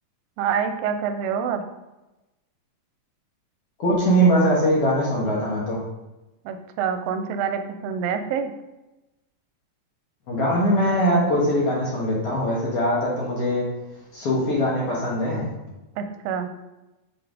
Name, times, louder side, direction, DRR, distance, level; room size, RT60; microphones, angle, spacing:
voice 1, 0.4-1.6 6.5-8.5 16.0-16.5, right 7 dB, 90° right, 7 dB, 2.3 m, -26 dB
voice 2, 3.8-5.8 10.3-13.7 14.1-15.5, equal, 50° left, -5 dB, 2.0 m, -21 dB
6.2 x 5.0 x 5.1 m, 1.0 s
omnidirectional pair, 4.1 m